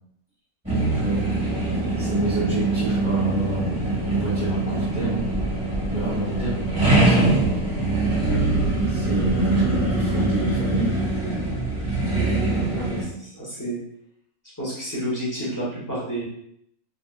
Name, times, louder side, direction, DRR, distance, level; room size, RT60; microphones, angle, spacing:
sound 1, 0.7-13.0, right 2 dB, 10° right, 1.2 m, -23 dB
voice 1, 0.9-1.3 2.0-3.7 4.1-7.7 8.9-11.0 12.5-12.7, right 2 dB, 35° right, -11 dB, 1.1 m, -28 dB
voice 2, 12.7-13.8 14.4-16.2, right 1 dB, 15° left, -7 dB, 0.9 m, -30 dB
3.7 x 2.5 x 2.4 m, 0.71 s
omnidirectional pair, 1.6 m